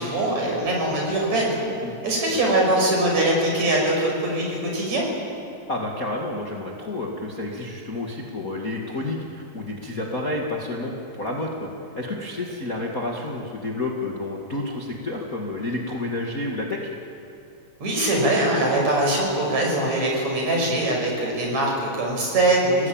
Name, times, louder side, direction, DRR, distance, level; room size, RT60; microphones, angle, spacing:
voice 1, 0.0-1.6 2.0-5.0 17.8-22.9, right 1 dB, 50° right, -1 dB, 7.1 m, -22 dB
voice 2, 5.7-11.7 12.0-16.8, left 2 dB, 30° left, -1 dB, 2.0 m, -30 dB
30.0 x 19.0 x 8.9 m, 2.8 s
omnidirectional pair, 4.1 m